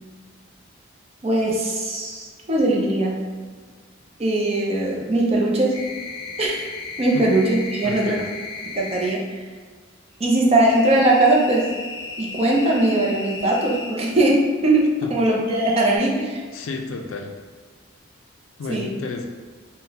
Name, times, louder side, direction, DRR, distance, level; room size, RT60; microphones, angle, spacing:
voice 1, 1.2-3.2 4.2-5.8 6.4-6.6 7.0-8.2 8.7-9.2 10.2-11.7 12.2-16.4 18.7-18.9, right 1 dB, 30° right, -2 dB, 0.4 m, -20 dB
sound 1, 5.7-9.2 10.6-13.9 15.5-16.0, left 3 dB, 20° left, 0.5 m, -35 dB
voice 2, 7.8-8.3 15.0-15.1 16.5-17.3 18.6-19.3, left 3 dB, 80° left, 4 dB, 0.4 m, -31 dB
3.7 x 2.1 x 2.8 m, 1.5 s
head